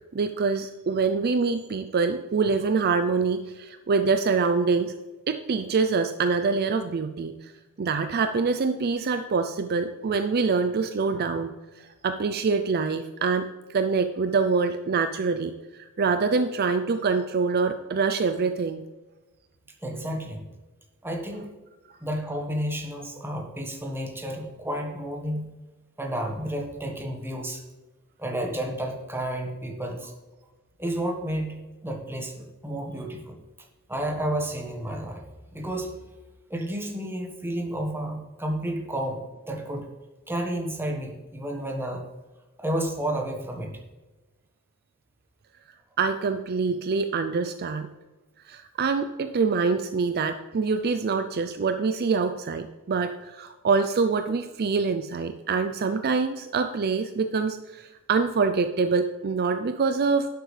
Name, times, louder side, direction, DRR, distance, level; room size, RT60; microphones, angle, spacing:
voice 1, 0.1-4.9 5.3-7.5 7.8-18.8 46.0-47.9 48.5-60.3, right 4 dB, 45° right, 9 dB, 0.4 m, -25 dB
voice 2, 19.8-20.4 21.0-21.5 22.0-25.5 26.0-27.6 28.2-30.1 30.8-33.4 33.9-35.2 35.5-35.9 36.5-39.9 40.3-42.0 42.6-43.8, right 1 dB, 10° right, 2 dB, 1.4 m, -31 dB
11.0 x 8.1 x 3.3 m, 1.2 s
head